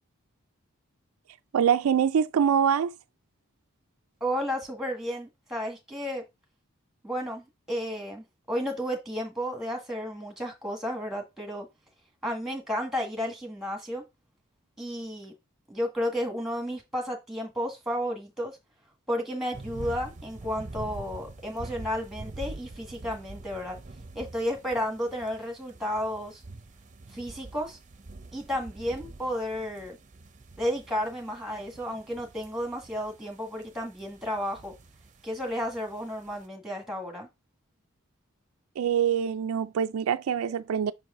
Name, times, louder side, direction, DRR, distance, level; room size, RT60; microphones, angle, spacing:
voice 1, 1.5-2.9 38.8-40.9, right 8 dB, 75° right, 0.4 m, -24 dB
voice 2, 4.2-6.2 7.0-11.7 12.2-14.0 14.8-15.3 15.7-18.6 19.1-23.8 24.2-26.4 27.1-27.8 28.3-30.0 30.6-34.7 35.2-37.3, equal, ahead, 1.7 m, -32 dB
sound 1, 19.5-36.4, right 2 dB, 35° right, 0.7 m, -45 dB
5.8 x 4.7 x 3.7 m
head